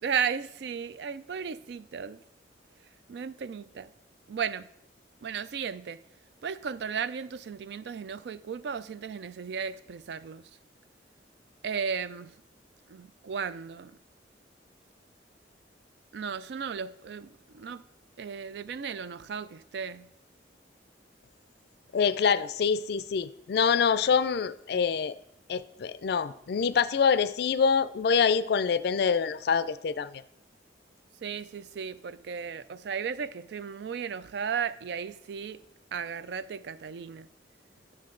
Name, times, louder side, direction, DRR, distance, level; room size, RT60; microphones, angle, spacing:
voice 1, 0.0-2.2 3.1-3.9 4.3-4.7 5.2-6.0 6.4-10.4 11.6-12.3 12.9-14.0 16.1-17.8 18.2-20.1 31.2-35.6 35.9-37.3, right 6 dB, 65° right, 0.3 m, -35 dB
voice 2, 21.9-25.2 25.5-30.1, left 6 dB, 60° left, 0.4 m, -25 dB
9.5 x 6.4 x 3.8 m
head